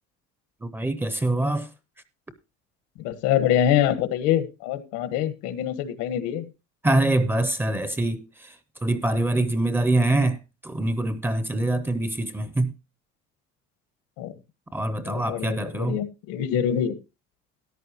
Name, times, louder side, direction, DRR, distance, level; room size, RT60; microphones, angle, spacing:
voice 1, 0.6-1.7 6.8-8.5 8.8-12.7 14.7-16.0, right 2 dB, 5° right, 0.5 m, -24 dB
voice 2, 3.0-6.4 14.2-14.3 15.1-17.0, left 10 dB, 85° left, 1.5 m, -25 dB
13.5 x 11.0 x 2.9 m
cardioid pair, 180°, 29 cm